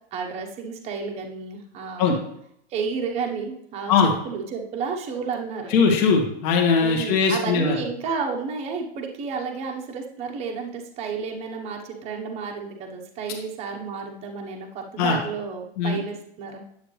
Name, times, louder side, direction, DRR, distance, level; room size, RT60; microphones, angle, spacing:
voice 1, 0.1-2.1 2.7-5.8 6.8-16.6, right 5 dB, 20° right, 1 dB, 1.2 m, -31 dB
voice 2, 5.7-7.8 15.0-15.2 15.8-16.0, left 5 dB, 35° left, 1 dB, 1.8 m, -20 dB
10.0 x 8.1 x 3.3 m, 0.71 s
supercardioid pair, 160°, 33 cm